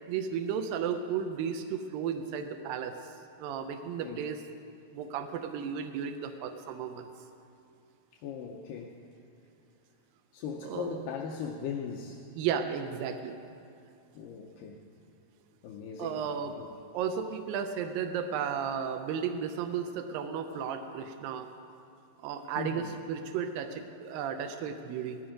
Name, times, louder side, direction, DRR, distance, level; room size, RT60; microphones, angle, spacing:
voice 1, 0.1-2.9 3.4-4.4 4.9-7.1 10.6-11.0 12.4-13.3 16.0-16.5 16.9-21.5 22.2-25.2, right 7 dB, 85° right, 6 dB, 2.5 m, -34 dB
voice 2, 8.1-9.0 10.3-12.3 14.1-14.8 15.6-16.8 22.6-22.9, left 6 dB, 80° left, 1 dB, 2.4 m, -39 dB
17.0 x 15.0 x 5.1 m, 2.5 s
omnidirectional pair, 4.0 m